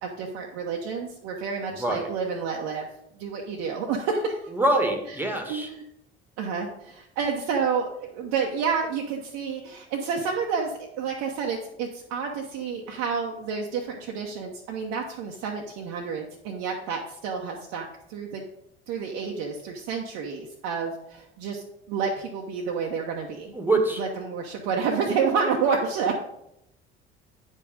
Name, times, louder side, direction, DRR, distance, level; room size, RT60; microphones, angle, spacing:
voice 1, 0.0-2.9 3.2-4.5 5.5-5.8 6.4-18.4 18.9-23.5 24.0-26.2, right 5 dB, 55° right, 0 dB, 1.0 m, -29 dB
voice 2, 1.8-2.1 4.5-5.7 23.5-24.0, right 1 dB, 5° right, 4 dB, 1.8 m, -24 dB
9.4 x 5.5 x 5.2 m, 0.81 s
figure-of-eight pair, 55°, 31 cm